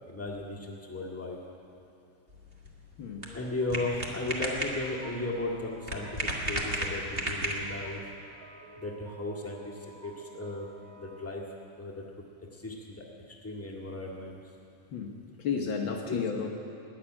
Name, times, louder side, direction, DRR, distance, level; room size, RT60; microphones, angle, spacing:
voice 1, 0.1-1.4 3.3-8.0 8.8-9.7 10.0-10.7 11.0-11.4 11.8-12.0 12.6-13.0 13.4-14.4 16.0-16.2, left 2 dB, 10° left, -3 dB, 0.7 m, -36 dB
sound 1, 2.3-7.9, right 1 dB, 35° right, 0.9 m, -35 dB
sound 2, 3.2-11.3, right 1 dB, 85° right, 3.6 m, -52 dB
voice 2, 14.9-16.5, left 6 dB, 85° left, 2 dB, 1.0 m, -32 dB
14.5 x 10.0 x 9.7 m, 2.6 s
omnidirectional pair, 3.7 m